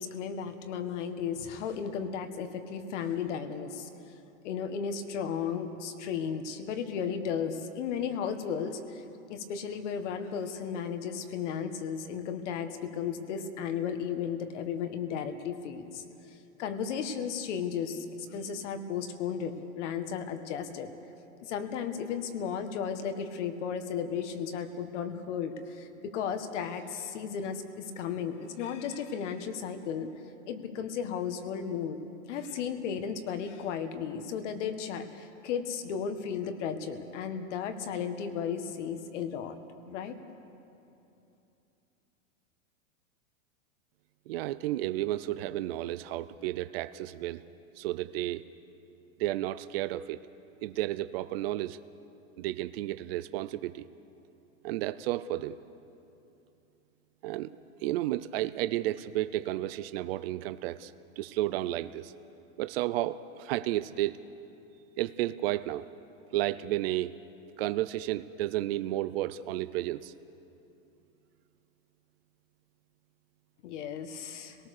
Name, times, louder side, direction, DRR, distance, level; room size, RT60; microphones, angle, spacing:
voice 1, 0.0-3.9 4.4-9.0 9.3-18.0 18.3-20.9 21.4-30.1 30.5-32.0 32.3-39.6 39.9-40.1 73.6-74.6, left 7 dB, 55° left, 8 dB, 1.8 m, -34 dB
voice 2, 44.3-47.4 47.8-48.4 49.2-50.2 50.6-51.8 52.4-53.9 54.6-55.6 57.2-57.5 57.8-62.1 62.6-64.2 65.0-65.9 66.3-67.1 67.6-70.1, right 15 dB, 45° right, 14 dB, 0.6 m, -32 dB
26.0 x 18.5 x 6.7 m, 2.8 s
supercardioid pair, 155°, 41 cm